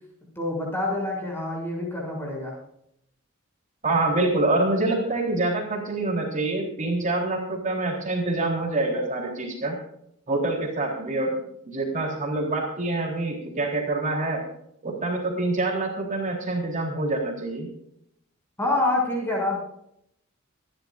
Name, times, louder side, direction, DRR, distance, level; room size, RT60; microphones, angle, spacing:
voice 1, 0.3-2.6 18.6-19.6, left 2 dB, 10° left, -1 dB, 6.8 m, -26 dB
voice 2, 3.8-9.8 10.3-14.4 14.8-17.7, right 2 dB, 40° right, -1 dB, 3.6 m, -26 dB
26.0 x 11.5 x 2.5 m, 0.75 s
head